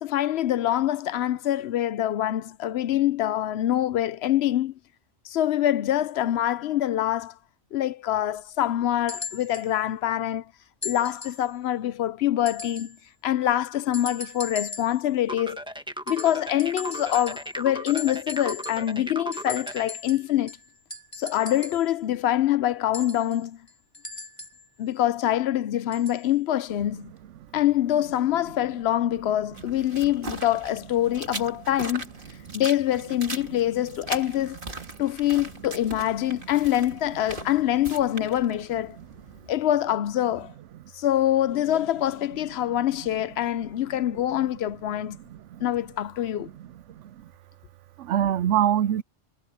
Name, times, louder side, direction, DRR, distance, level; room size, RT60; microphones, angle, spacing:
voice 1, 0.0-4.7 5.2-7.3 7.7-10.4 10.8-13.0 13.2-15.6 16.1-20.6 21.2-23.6 24.8-27.1 27.5-32.1 32.5-34.6 35.0-39.0 39.5-40.5 40.9-45.2 45.6-46.5, left 12 dB, 70° left, 0.8 m, -25 dB
sound 1, 9.1-9.7 10.8-11.5 12.5-13.0 13.9-15.0 16.1-17.6 17.9-18.9 19.3-21.9 22.9-24.7 25.9-26.3 27.2-27.3, left 3 dB, 25° left, 4.3 m, -39 dB
sound 2, 15.3-19.9, equal, 5° right, 1.3 m, -36 dB
sound 3, 29.5-39.5, right 2 dB, 45° right, 2.6 m, -40 dB
voice 2, 45.1-45.6 46.6-47.3 48.0-49.0, right 10 dB, 85° right, 0.9 m, -26 dB
omnidirectional pair, 1.2 m